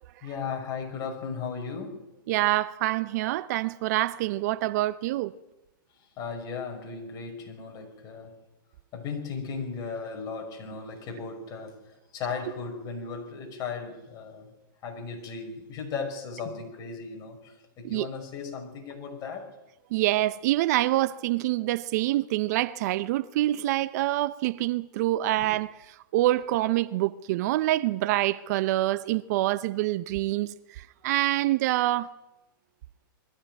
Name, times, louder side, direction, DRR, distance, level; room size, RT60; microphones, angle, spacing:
voice 1, 0.2-2.1 6.2-8.4 8.9-14.5 14.8-19.5 25.0-25.1 25.4-25.5, left 5 dB, 30° left, 5.7 m, -36 dB
voice 2, 2.3-5.3 17.8-18.1 19.9-25.7 26.1-32.1, right 16 dB, 50° right, 0.6 m, -26 dB
21.5 x 14.0 x 9.2 m
hypercardioid pair, 140°, 12 cm